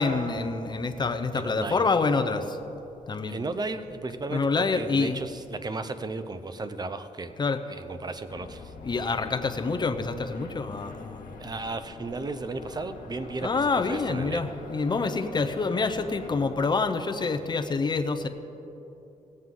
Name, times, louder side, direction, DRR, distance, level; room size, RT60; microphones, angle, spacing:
voice 1, 0.0-2.6 3.1-3.4 4.3-5.2 7.4-7.6 8.8-11.3 13.4-18.3, left 4 dB, 30° left, 7 dB, 0.7 m, -27 dB
voice 2, 1.3-1.9 3.3-7.3 7.7-8.7 11.4-14.5, right 3 dB, 30° right, 11 dB, 0.6 m, -34 dB
sound 1, 8.3-16.6, left 3 dB, 90° left, 1.5 m, -44 dB
18.5 x 7.8 x 3.8 m, 3.0 s
cardioid pair, 100°, 14 cm